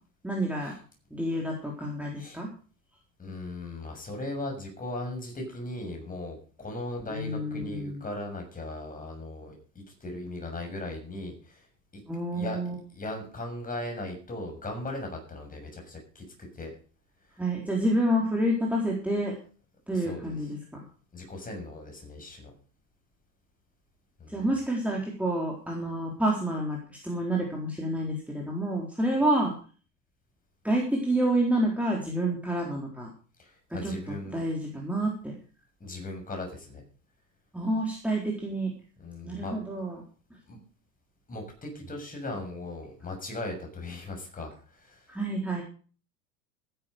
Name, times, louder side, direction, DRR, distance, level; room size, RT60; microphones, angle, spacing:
voice 1, 0.2-0.7 1.1-2.5 7.1-8.0 12.1-12.8 17.4-19.3 19.9-20.6 24.3-29.5 30.6-33.1 33.8-33.9 34.3-35.4 37.5-38.7 39.2-40.0 45.1-45.6, right 1 dB, 5° right, -2 dB, 3.9 m, -28 dB
voice 2, 3.2-11.7 11.9-12.0 12.3-12.6 12.9-16.7 19.9-20.4 21.1-22.5 24.2-24.5 33.4-34.4 35.8-36.8 39.0-39.6 40.5-40.6 41.3-45.1, left 2 dB, 15° left, 2 dB, 6.8 m, -38 dB
14.5 x 11.5 x 5.2 m, 0.40 s
figure-of-eight pair, 85°, 50 cm